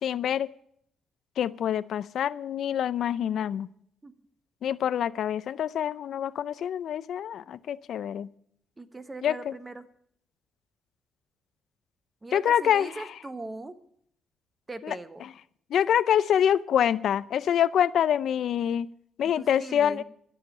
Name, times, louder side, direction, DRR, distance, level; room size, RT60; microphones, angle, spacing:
voice 1, 0.0-0.5 1.4-3.7 4.6-8.3 9.2-9.5 12.3-13.1 14.8-15.0 15.2-15.3 15.7-18.9 19.2-20.0, left 9 dB, 65° left, 0.4 m, -26 dB
voice 2, 8.8-9.9 12.2-13.8 14.7-15.3 19.2-20.0, right 2 dB, 20° right, 1.2 m, -40 dB
13.0 x 7.3 x 9.8 m
cardioid pair, 90°, 0 cm